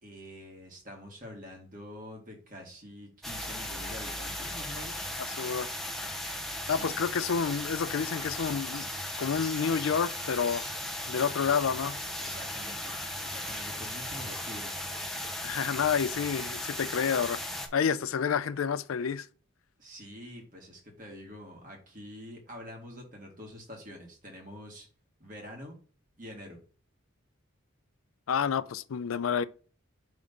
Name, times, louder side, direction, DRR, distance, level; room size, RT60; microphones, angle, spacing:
voice 1, 0.0-5.0 6.6-7.0 12.2-12.9 13.2-14.7 19.8-24.9 25.2-25.8 26.2-26.6, left 1 dB, 40° right, 1.9 m, -46 dB
sound 1, 3.2-17.7, left 1 dB, ahead, 0.7 m, -37 dB
voice 2, 5.4-5.7 6.7-8.9 9.2-10.7 11.1-12.0 15.4-19.3 28.3-29.4, left 6 dB, 90° left, 0.4 m, -29 dB
5.3 x 3.6 x 5.3 m
head